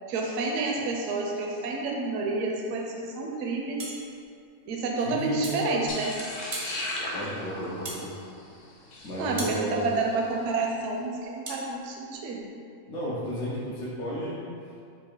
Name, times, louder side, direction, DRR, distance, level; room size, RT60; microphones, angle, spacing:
voice 1, 0.1-3.9 4.7-6.1 9.2-12.4, right 3 dB, 70° right, 0 dB, 0.9 m, -29 dB
sound 1, 3.8-4.0 5.4-5.7 6.5-6.8 7.8-8.1 9.4-9.6 11.5-11.6, right 2 dB, 50° right, 0.4 m, -36 dB
voice 2, 5.0-5.8 7.1-8.1 9.0-9.9 12.9-14.4, equal, 85° left, -8 dB, 1.3 m, -33 dB
sound 2, 5.9-10.2, left 1 dB, 65° left, 1.1 m, -37 dB
4.5 x 2.4 x 4.6 m, 2.4 s
omnidirectional pair, 1.5 m